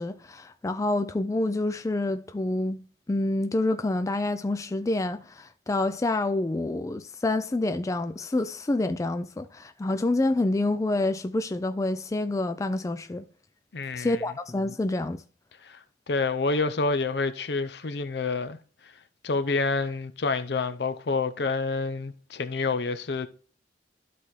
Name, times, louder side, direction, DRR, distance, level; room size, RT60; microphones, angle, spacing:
voice 1, 0.0-13.2 13.9-15.2, left 2 dB, 20° left, 0.3 m, -27 dB
voice 2, 13.7-14.2 15.6-15.8 16.1-18.6 18.8-18.9 19.2-23.3, left 3 dB, 65° left, 0.6 m, -28 dB
12.0 x 4.2 x 3.1 m
head